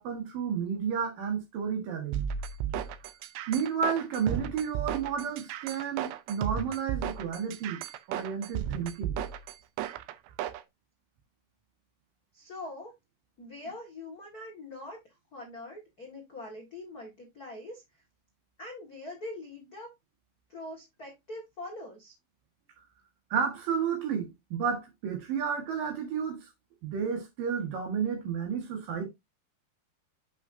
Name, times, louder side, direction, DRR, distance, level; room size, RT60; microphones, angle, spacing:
voice 1, 0.0-2.2 3.5-9.2 23.3-26.5 26.8-29.1, right 7 dB, 60° right, 3.1 m, -31 dB
sound 1, 2.1-10.6, right 9 dB, 85° right, 3.0 m, -34 dB
voice 2, 12.3-12.9 13.4-15.0 15.3-17.8 18.6-19.9 20.5-22.1, left 2 dB, 60° left, 0.9 m, -43 dB
8.3 x 5.8 x 2.7 m
omnidirectional pair, 4.9 m